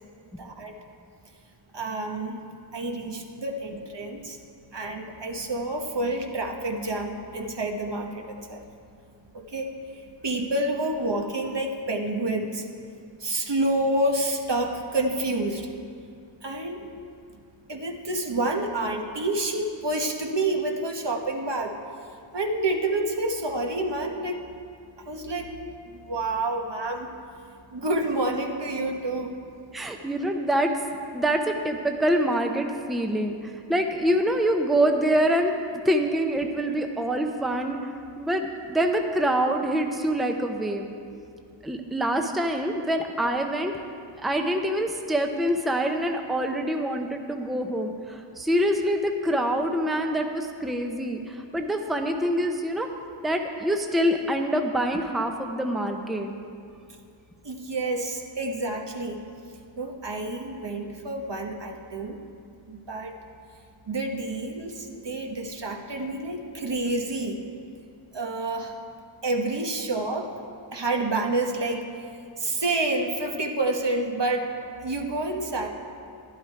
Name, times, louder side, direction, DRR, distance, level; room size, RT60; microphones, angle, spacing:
voice 1, 0.4-0.7 1.7-2.4 2.7-4.4 4.7-8.6 9.3-9.7 10.2-12.6 13.2-15.7 16.4-16.8 17.7-21.7 22.3-24.4 25.1-25.5 25.9-27.1 27.7-29.3 57.4-59.2 59.8-62.2 62.7-63.1 63.9-67.4 68.1-68.7 69.2-70.3 70.7-71.9 72.4-74.5 74.8-75.7, right 2 dB, 55° right, 2 dB, 1.2 m, -28 dB
voice 2, 29.7-30.7 31.1-33.4 33.7-35.5 35.8-37.8 38.2-40.9 41.6-43.8 44.2-52.9 53.2-56.3, right 1 dB, ahead, 4 dB, 0.7 m, -25 dB
12.0 x 11.5 x 4.6 m, 2.4 s
wide cardioid pair, 60°, 49 cm